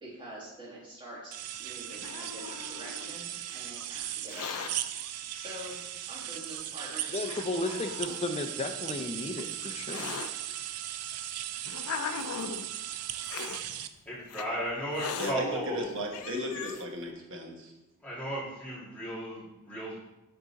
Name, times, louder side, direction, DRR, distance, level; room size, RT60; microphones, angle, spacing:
voice 1, 0.0-3.2 3.5-7.1, right 1 dB, 20° right, -8 dB, 2.1 m, -46 dB
sound 1, 1.3-13.9, right 12 dB, 80° right, 0.4 m, -38 dB
Hiss, 1.5-3.2 4.1-4.7 5.7-5.8 6.6-6.7 7.2-8.2 9.1-10.3 11.1-12.7 13.2-13.6 14.3-14.5 14.9-15.3 15.8-15.9 16.1-16.8, left 6 dB, 85° left, 0.5 m, -39 dB
voice 2, 7.1-10.3, left 2 dB, 30° left, 5 dB, 0.5 m, -34 dB
voice 3, 14.1-15.9 18.0-20.0, right 1 dB, 5° left, -8 dB, 2.2 m, -35 dB
voice 4, 15.2-17.7, equal, 60° right, 1 dB, 1.1 m, -35 dB
7.7 x 3.7 x 4.0 m, 0.97 s
head